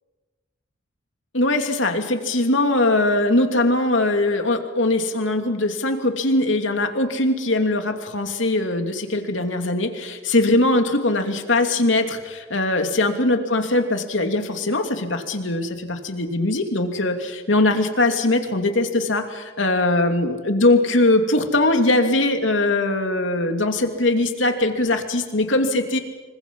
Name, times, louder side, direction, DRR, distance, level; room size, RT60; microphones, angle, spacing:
voice 1, 1.3-26.0, left 2 dB, 80° left, 5 dB, 2.8 m, -21 dB
27.0 x 24.5 x 5.6 m, 1.4 s
head